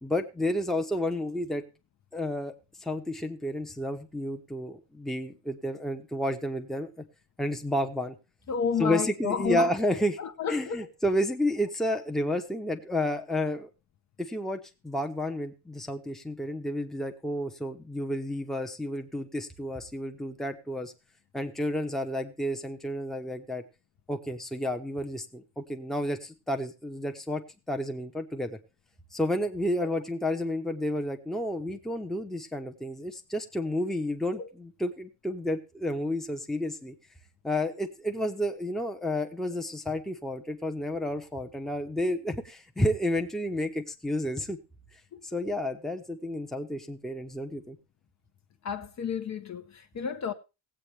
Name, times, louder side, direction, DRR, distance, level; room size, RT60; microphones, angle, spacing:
voice 1, 0.0-1.6 2.1-2.5 2.8-6.9 7.4-8.2 8.8-10.2 10.5-13.7 14.2-20.9 21.3-23.6 24.1-27.4 27.7-28.6 29.1-36.9 37.4-44.6 45.3-47.8, left 1 dB, ahead, 0.8 m, -31 dB
voice 2, 8.5-9.7 10.2-10.9 29.8-29.9 34.4-34.5 45.1-45.2 48.6-50.3, left 7 dB, 40° left, 0.8 m, -31 dB
19.0 x 8.2 x 3.3 m
cardioid pair, 150°, 44 cm